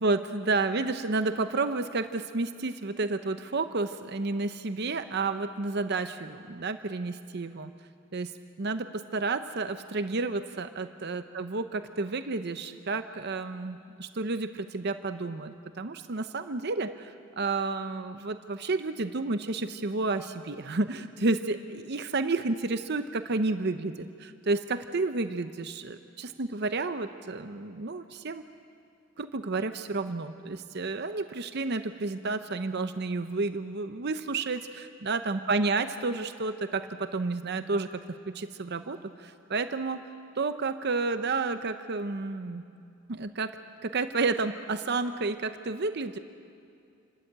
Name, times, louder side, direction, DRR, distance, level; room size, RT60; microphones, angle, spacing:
voice 1, 0.0-7.7 8.1-8.3 8.6-28.4 29.2-38.0 38.3-40.0 40.4-42.6 43.1-43.6 43.8-46.2, right 3 dB, 55° right, 9 dB, 0.7 m, -31 dB
28.0 x 13.0 x 8.8 m, 2.5 s
head